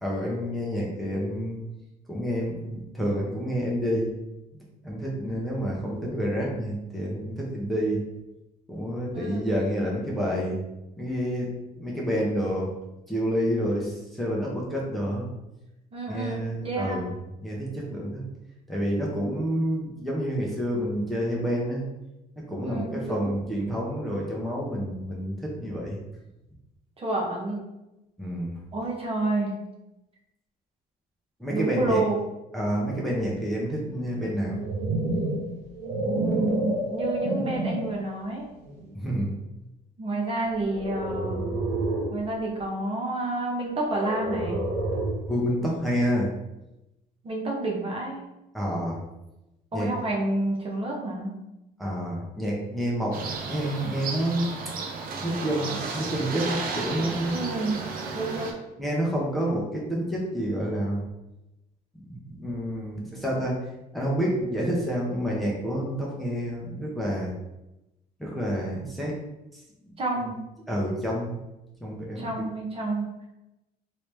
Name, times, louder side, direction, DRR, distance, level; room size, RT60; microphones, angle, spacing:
voice 1, 0.0-1.6 2.1-4.1 4.5-8.0 8.7-10.6 11.0-12.7 13.1-15.3 16.1-17.1 17.4-18.2 18.7-21.8 22.4-26.0 28.2-28.6 31.4-32.0 32.5-34.6 38.9-39.3 45.3-46.3 48.5-49.0 49.7-49.9 51.8-54.5 55.2-57.4 58.8-61.0 62.0-63.7 63.9-67.3 68.2-69.2 70.7-71.4 71.8-72.3, equal, ahead, -4 dB, 0.8 m, -28 dB
voice 2, 9.1-9.5 15.9-17.0 22.6-23.3 27.0-27.6 28.7-29.6 31.5-32.2 36.0-38.5 40.0-41.5 42.1-44.6 47.2-48.2 49.7-51.4 57.3-57.8 58.1-58.6 70.0-70.4 72.1-73.1, right 2 dB, 35° right, -2 dB, 0.9 m, -29 dB
sound 1, 34.3-38.0 38.6-38.9 40.7-42.2 43.9-45.3, right 2 dB, 85° right, 0.9 m, -29 dB
sound 2, 53.1-58.5, right 4 dB, 60° right, 0.7 m, -33 dB
3.2 x 2.8 x 3.2 m, 0.94 s
cardioid pair, 110°, 17 cm